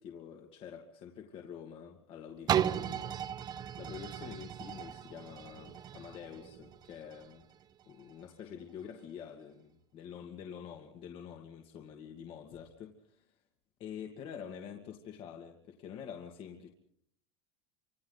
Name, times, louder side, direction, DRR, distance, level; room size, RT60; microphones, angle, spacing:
voice 1, 0.0-3.2 3.8-7.4 7.9-13.2 13.8-16.7, left 8 dB, 45° left, 2.4 m, -47 dB
sound 1, 2.5-8.2 8.8-8.9, right 10 dB, 30° right, 0.8 m, -36 dB
28.5 x 26.5 x 4.1 m
supercardioid pair, 125°, 13 cm